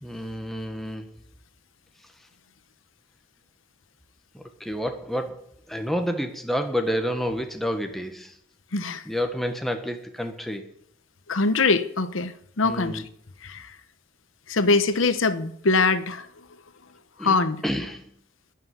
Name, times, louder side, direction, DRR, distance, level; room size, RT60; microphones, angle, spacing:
voice 1, 0.0-1.1 4.3-5.4 5.7-8.3 9.0-10.6 12.6-13.0 17.2-17.4 17.6-18.0, equal, ahead, 1.4 m, -29 dB
voice 2, 8.7-9.0 11.3-12.3 12.6-13.0 13.4-13.7 14.5-16.3 17.2-17.6, left 3 dB, 85° left, 1.0 m, -23 dB
12.5 x 9.5 x 9.5 m
head